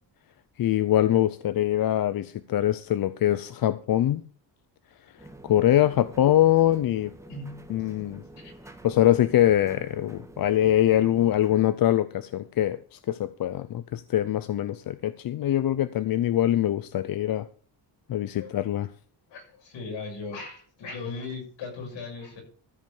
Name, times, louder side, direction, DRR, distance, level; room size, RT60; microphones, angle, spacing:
voice 1, 0.6-4.2 5.4-7.1 7.7-8.2 8.8-17.5 18.1-18.9, left 12 dB, 55° left, 0.6 m, -23 dB
sound 1, 5.2-11.7, right 1 dB, 5° right, 1.5 m, -47 dB
voice 2, 5.7-6.2 7.3-7.9 8.3-8.7 18.4-18.5 19.3-22.4, left 4 dB, 80° left, 6.8 m, -39 dB
14.0 x 5.3 x 7.2 m
cardioid pair, 140°, 43 cm